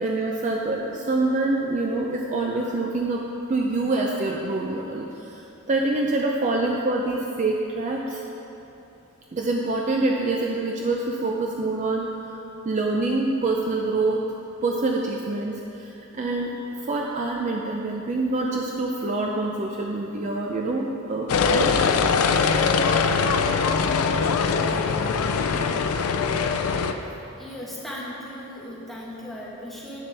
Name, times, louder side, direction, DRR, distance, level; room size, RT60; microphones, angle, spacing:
voice 1, 0.0-3.2 3.5-5.4 5.7-8.2 9.3-12.1 12.6-14.3 14.6-16.5 16.8-21.9, right 2 dB, 35° right, 0 dB, 0.4 m, -26 dB
sound 1, 21.3-26.9, left 5 dB, 75° left, 0.4 m, -22 dB
voice 2, 27.4-30.0, equal, ahead, -6 dB, 1.1 m, -37 dB
8.4 x 6.9 x 3.3 m, 3.0 s
head